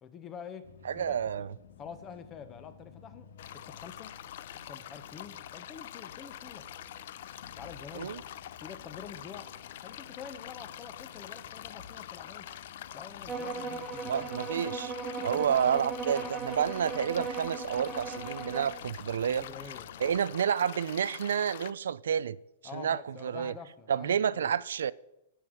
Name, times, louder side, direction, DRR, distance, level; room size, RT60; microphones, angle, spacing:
voice 1, 0.0-1.5 1.8-4.2 4.6-6.7 7.5-8.2 8.6-9.6 9.8-12.5 12.9-14.3 15.2-15.6 19.3-20.1 22.6-24.6, left 7 dB, 20° left, 1.0 m, -47 dB
sound 1, 0.6-20.2, left 5 dB, 80° left, 1.7 m, -54 dB
voice 2, 0.8-1.5 8.0-8.2 14.1-14.9 15.2-19.4 20.0-22.4 22.7-23.5 23.9-24.9, right 8 dB, 85° right, 0.5 m, -29 dB
sound 2, 3.4-21.7, left 12 dB, 55° left, 0.5 m, -45 dB
sound 3, 13.3-18.8, right 4 dB, 10° right, 1.4 m, -37 dB
10.0 x 9.2 x 7.9 m
hypercardioid pair, 165°, 0 cm